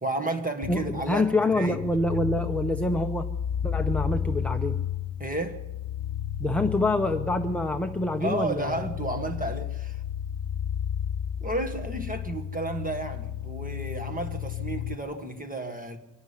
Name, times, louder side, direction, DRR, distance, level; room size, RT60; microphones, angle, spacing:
voice 1, 0.0-1.3 1.5-1.8 5.2-5.6 8.2-10.0 11.4-16.0, right 2 dB, 20° right, 6 dB, 1.6 m, -32 dB
sound 1, 0.6-14.9, left 9 dB, 80° left, 0.7 m, -33 dB
voice 2, 0.7-3.3 3.6-4.8 6.4-8.9, left 1 dB, 5° left, 4 dB, 0.7 m, -26 dB
24.0 x 12.0 x 9.9 m, 1.1 s
wide cardioid pair, 170°, 44 cm